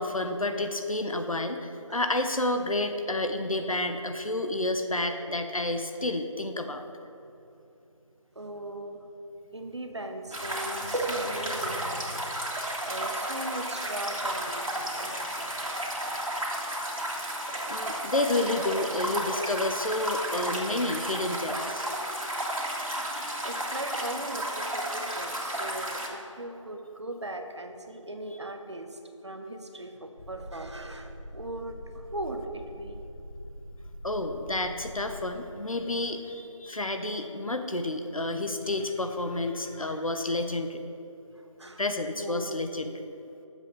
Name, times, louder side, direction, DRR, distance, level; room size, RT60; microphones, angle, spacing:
voice 1, 0.0-6.8 11.9-12.0 17.7-21.8 34.0-40.8 41.8-42.9, left 2 dB, 90° left, 6 dB, 0.8 m, -30 dB
voice 2, 8.3-9.0 9.5-15.6 17.5-17.9 23.4-33.0 39.9-40.0 41.3-41.8 42.1-42.6, right 1 dB, 55° right, 5 dB, 0.8 m, -39 dB
sound 1, 10.3-26.1, right 1 dB, 90° right, 1.9 m, -32 dB
sound 2, 30.2-35.4, equal, 50° left, 0.6 m, -44 dB
8.9 x 7.3 x 4.0 m, 2.8 s
figure-of-eight pair, 175°, 17 cm